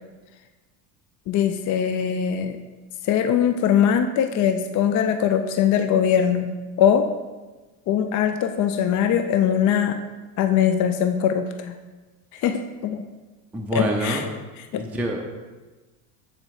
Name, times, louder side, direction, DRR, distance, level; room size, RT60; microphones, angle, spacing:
voice 1, 1.3-2.6 3.0-7.1 7.9-10.0 10.4-11.8 12.3-13.0 13.7-14.3 14.7-14.9, left 8 dB, 40° left, 8 dB, 0.4 m, -21 dB
voice 2, 13.5-14.2 14.8-15.2, right 1 dB, 5° right, 0 dB, 0.6 m, -26 dB
8.4 x 4.4 x 3.2 m, 1.2 s
supercardioid pair, 85°, 49 cm